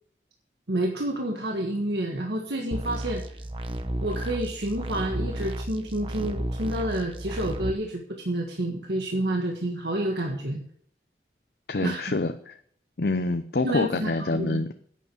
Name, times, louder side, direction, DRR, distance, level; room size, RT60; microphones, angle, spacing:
voice 1, 0.7-3.2 4.0-10.6 11.8-12.0 13.6-14.6, right 1 dB, 75° right, 1 dB, 1.6 m, -29 dB
sound 1, 2.7-7.7, right 1 dB, 30° right, 1.0 m, -33 dB
voice 2, 11.7-12.6 13.0-14.7, left 2 dB, 65° left, 9 dB, 0.6 m, -26 dB
11.0 x 8.6 x 6.7 m, 0.63 s
head